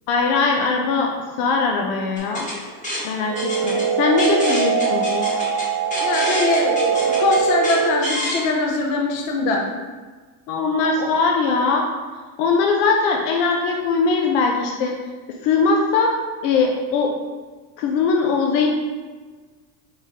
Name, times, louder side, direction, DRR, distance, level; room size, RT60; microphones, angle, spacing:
voice 1, 0.1-1.1 1.4-2.5 3.0-5.3 10.5-11.8 12.4-15.0 15.4-16.2 16.4-17.1 17.8-18.7, left 4 dB, 80° left, 2 dB, 0.7 m, -20 dB
sound 1, 2.2-8.4, equal, 15° left, 1.1 m, -29 dB
sound 2, 3.2-8.2, right 6 dB, 60° right, 0.5 m, -22 dB
voice 2, 6.0-9.6 10.9-11.1, left 3 dB, 40° left, 0 dB, 0.6 m, -22 dB
4.9 x 3.6 x 2.8 m, 1.4 s
cardioid pair, 165°, 47 cm